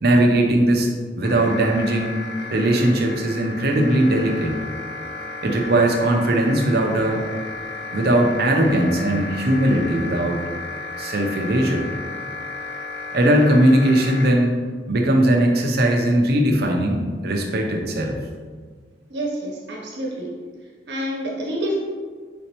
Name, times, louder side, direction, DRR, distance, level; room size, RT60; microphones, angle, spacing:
voice 1, 0.0-0.9 1.2-2.2 2.5-4.6 5.4-7.3 7.9-10.4 11.0-11.9 13.1-14.5 14.9-18.2, right 1 dB, 60° right, 2 dB, 0.6 m, -19 dB
sound 1, 1.2-14.3, left 3 dB, 75° left, 0.6 m, -33 dB
voice 2, 19.1-20.3 20.9-21.7, equal, 85° right, -3 dB, 1.2 m, -28 dB
4.2 x 3.8 x 3.0 m, 1.5 s
head